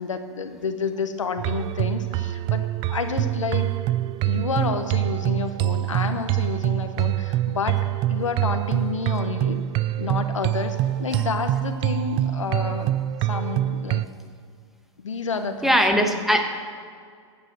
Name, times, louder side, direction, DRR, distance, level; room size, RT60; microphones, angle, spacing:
voice 1, 0.0-3.7 4.2-7.8 8.1-9.6 10.0-13.0 13.3-14.0 15.0-16.2, left 5 dB, 85° left, 7 dB, 1.2 m, -29 dB
sound 1, 1.4-14.0, right 14 dB, 35° right, 0.4 m, -25 dB
voice 2, 15.6-16.4, equal, ahead, 5 dB, 1.3 m, -20 dB
15.5 x 8.6 x 6.3 m, 2.2 s
hypercardioid pair, 105°, 16 cm